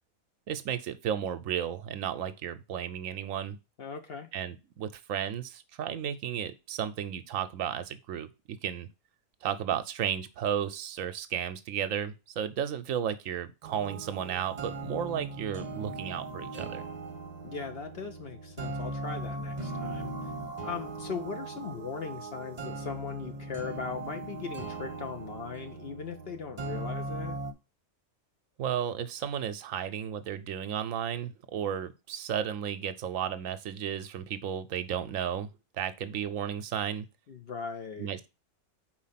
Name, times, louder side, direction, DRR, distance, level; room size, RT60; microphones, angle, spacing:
voice 1, 0.5-3.6 4.3-8.9 9.4-16.8 28.6-35.5 35.8-37.1 38.0-38.3, right 9 dB, 70° right, 12 dB, 0.9 m, -33 dB
voice 2, 3.8-4.3 17.4-20.1 20.6-27.4 37.3-38.1, left 5 dB, 55° left, 7 dB, 0.8 m, -39 dB
sound 1, 13.6-27.5, right 2 dB, 35° right, 1.0 m, -39 dB
4.8 x 4.2 x 5.6 m, 0.28 s
omnidirectional pair, 1.5 m